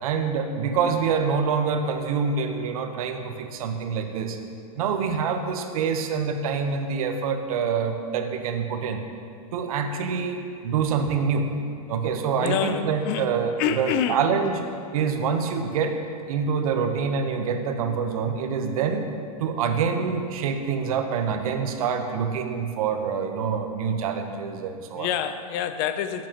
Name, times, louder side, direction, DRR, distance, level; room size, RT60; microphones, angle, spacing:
voice 1, 0.0-4.4 4.7-9.0 9.5-11.5 11.9-14.6 14.9-16.0 16.3-19.1 19.4-25.1, right 6 dB, 70° right, 6 dB, 0.9 m, -26 dB
voice 2, 12.4-13.3 13.6-14.2 14.5-14.6 25.0-26.3, left 9 dB, 40° left, 10 dB, 0.5 m, -27 dB
12.0 x 7.3 x 3.0 m, 2.5 s
hypercardioid pair, 130°, 19 cm